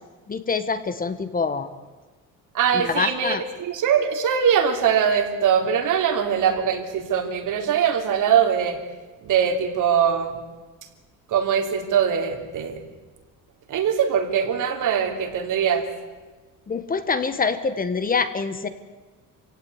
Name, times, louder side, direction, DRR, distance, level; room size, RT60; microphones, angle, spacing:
voice 1, 0.3-1.7 2.7-3.4 16.7-18.7, left 5 dB, 25° left, 11 dB, 1.3 m, -25 dB
voice 2, 2.5-8.8 9.2-10.4 11.3-12.8 13.7-15.8, right 8 dB, 60° right, 5 dB, 3.4 m, -22 dB
27.0 x 16.5 x 9.7 m, 1.3 s
cardioid pair, 150°, 34 cm